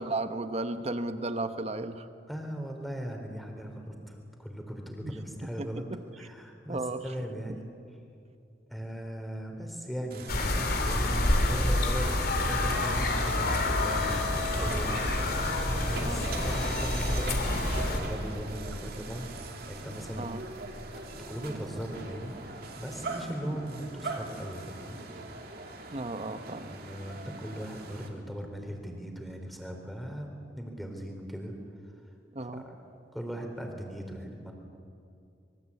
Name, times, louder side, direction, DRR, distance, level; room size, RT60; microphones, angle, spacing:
voice 1, 0.0-2.1 5.0-5.1 5.4-6.0 6.7-7.1 15.8-16.3 20.2-20.4 25.9-26.7 32.3-32.6, right 2 dB, 35° right, 9 dB, 1.1 m, -34 dB
voice 2, 2.3-5.8 6.2-7.7 8.7-20.4 20.8-25.0 26.6-31.5 32.5-32.8 33.1-34.5, equal, ahead, 3 dB, 3.7 m, -39 dB
sound 1, 10.1-28.1, right 1 dB, 55° right, 3.0 m, -40 dB
sound 2, 10.3-18.0, left 2 dB, 55° left, 3.1 m, -28 dB
26.5 x 23.0 x 8.5 m, 2.5 s
head